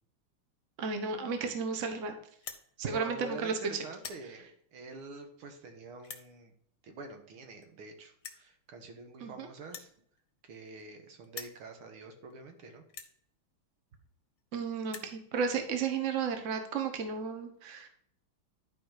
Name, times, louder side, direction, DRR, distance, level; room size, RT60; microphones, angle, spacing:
voice 1, 0.8-2.1 2.8-3.5 9.2-9.5 14.5-17.9, right 5 dB, 45° right, 6 dB, 1.2 m, -33 dB
sound 1, 2.3-2.6 3.3-3.5 3.8-4.2 5.0-5.1 6.0-6.3 7.3-7.4 7.6-7.7 8.2-8.5 9.6-11.0 11.2-11.6 12.3-12.4 12.9-13.1 14.1-14.2 14.4-14.5 14.7-15.1, left 6 dB, 50° left, 1.1 m, -45 dB
voice 2, 2.8-6.5 6.8-9.9 10.4-12.8, right 3 dB, 75° right, 5 dB, 2.1 m, -46 dB
11.5 x 4.9 x 4.9 m, 0.68 s
omnidirectional pair, 2.4 m